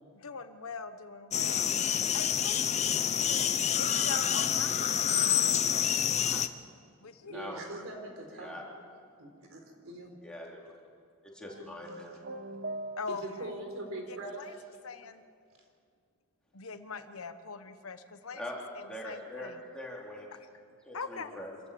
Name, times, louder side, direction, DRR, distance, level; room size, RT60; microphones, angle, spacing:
voice 1, 0.1-1.8 2.1-3.4 3.8-5.8 6.1-6.5 7.0-7.5 13.0-13.5 14.1-14.6 14.8-15.2 16.5-18.4 18.7-19.6 20.3-20.5 20.9-21.4, left 4 dB, 75° left, 10 dB, 1.2 m, -43 dB
sound 1, 1.3-6.5, left 8 dB, 30° left, 0.8 m, -28 dB
voice 2, 7.3-8.6 9.2-10.1 13.1-14.4, right 2 dB, 70° right, 3 dB, 4.2 m, -42 dB
voice 3, 10.2-10.7 11.2-12.2 18.3-18.6 18.9-20.3 20.9-21.5, left 1 dB, 5° left, -3 dB, 3.7 m, -43 dB
sound 2, 11.5-13.5, right 2 dB, 50° right, 1.1 m, -41 dB
26.5 x 15.0 x 8.6 m, 2.3 s
head